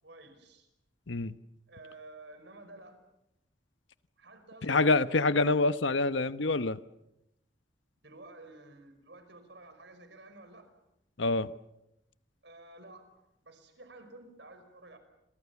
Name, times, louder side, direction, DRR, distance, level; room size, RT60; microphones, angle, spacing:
voice 1, 0.0-0.7 1.7-3.0 4.2-5.7 8.0-10.7 12.4-15.0, right 2 dB, 65° right, 5.4 m, -52 dB
voice 2, 4.6-6.8 11.2-11.5, left 3 dB, 75° left, 1.0 m, -26 dB
29.5 x 23.5 x 7.2 m
head